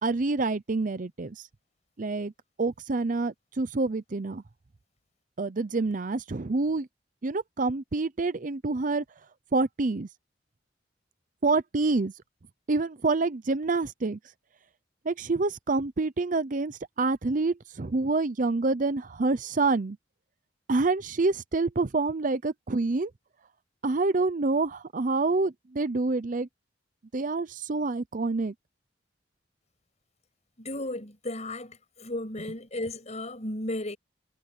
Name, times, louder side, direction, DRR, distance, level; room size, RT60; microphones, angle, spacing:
voice 1, 0.0-1.4 2.0-2.3 2.6-4.4 5.4-6.9 7.2-9.0 9.5-10.1 11.4-12.1 12.7-14.2 15.1-20.0 20.7-23.1 23.8-26.5 27.1-28.5, right 3 dB, 45° right, 0.6 m, -27 dB
voice 2, 30.6-34.0, left 1 dB, 40° left, 8.0 m, -34 dB
head